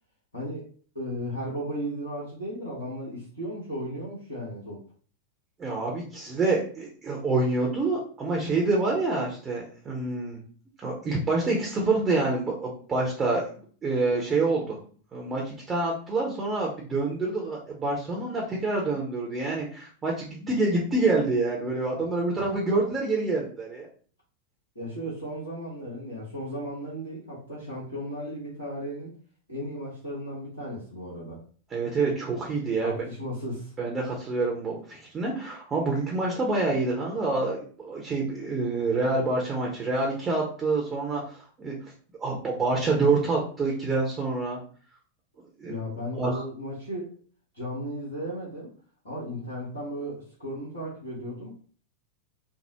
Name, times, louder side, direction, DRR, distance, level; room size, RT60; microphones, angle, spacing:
voice 1, 0.3-0.6 0.9-4.8 24.7-29.1 29.5-31.4 32.8-33.7 45.7-47.1 47.5-48.7 49.0-51.5, equal, 80° left, -8 dB, 1.2 m, -35 dB
voice 2, 5.6-10.4 10.8-13.5 13.8-14.8 15.1-23.9 31.7-33.0 33.8-41.8 42.2-44.6 45.6-45.7 46.1-46.4, right 3 dB, 20° right, -2 dB, 0.7 m, -27 dB
3.5 x 2.0 x 2.8 m, 0.43 s
figure-of-eight pair, 90°, 0 cm